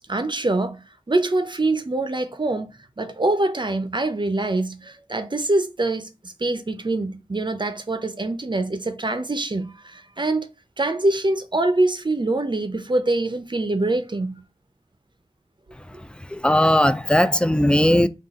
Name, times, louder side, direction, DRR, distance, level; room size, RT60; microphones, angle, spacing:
voice 1, 0.1-10.5 10.8-14.4, right 2 dB, 45° right, 0.7 m, -24 dB
voice 2, 16.0-18.1, left 1 dB, 10° left, 0.4 m, -18 dB
4.0 x 2.6 x 3.6 m
wide cardioid pair, 45°, 11 cm